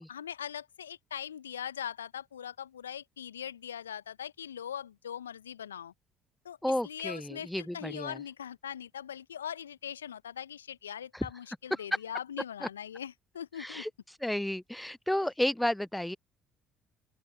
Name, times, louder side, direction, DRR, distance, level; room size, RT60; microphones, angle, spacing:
voice 1, 0.0-5.9 6.4-6.6 6.8-13.8, left 9 dB, 80° left, 1.3 m, -41 dB
voice 2, 6.6-8.2 11.1-11.3 12.6-12.7 13.6-13.9 14.2-16.2, left 1 dB, 5° left, 0.3 m, -32 dB
open air
figure-of-eight pair, 50°, 0 cm